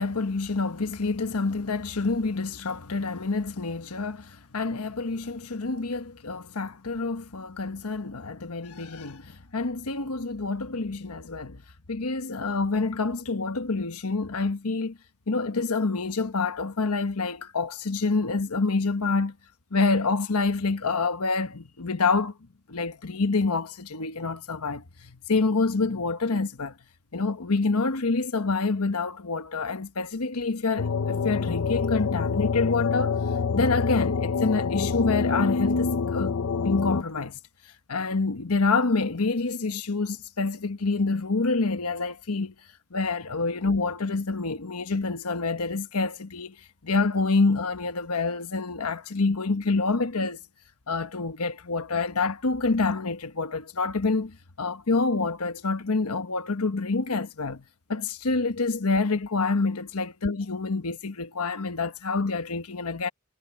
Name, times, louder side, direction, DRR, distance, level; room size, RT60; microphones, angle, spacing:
voice 1, 0.0-11.6 11.9-15.0 15.3-19.3 19.7-22.3 22.7-26.7 27.1-33.2 33.5-36.3 36.6-37.4 37.9-42.5 42.9-46.6 46.8-50.4 50.9-57.6 57.9-63.1, left 3 dB, 80° left, 1.2 m, -27 dB
sound 1, 30.8-37.0, left 5 dB, 65° left, 0.6 m, -26 dB
head